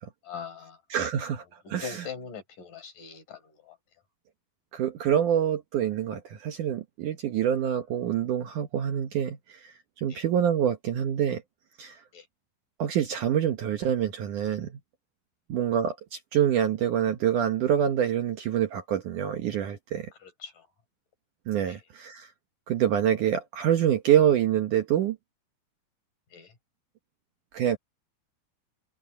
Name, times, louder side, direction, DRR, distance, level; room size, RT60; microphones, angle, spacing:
voice 1, 0.2-0.8 1.6-3.8 10.1-10.2 12.1-12.3 20.2-20.7 21.7-21.8 26.3-26.5, left 6 dB, 55° left, 6.0 m, -42 dB
voice 2, 0.9-1.4 1.7-2.1 4.7-11.4 11.8-12.0 12.8-14.8 15.5-20.1 21.5-22.3 22.7-25.2 27.5-27.8, right 9 dB, 65° right, 2.3 m, -26 dB
omnidirectional pair, 4.6 m